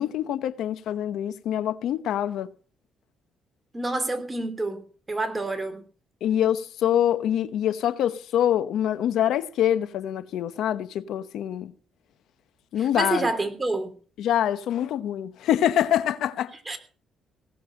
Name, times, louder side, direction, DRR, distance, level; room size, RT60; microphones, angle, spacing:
voice 1, 0.0-2.5 6.2-11.7 12.7-13.3 14.2-16.5, left 10 dB, 80° left, 0.9 m, -25 dB
voice 2, 3.7-4.8 5.1-5.8 12.8-13.9 16.7-16.8, right 2 dB, 20° right, 3.1 m, -28 dB
18.0 x 7.1 x 7.8 m
cardioid pair, 90°, 0 cm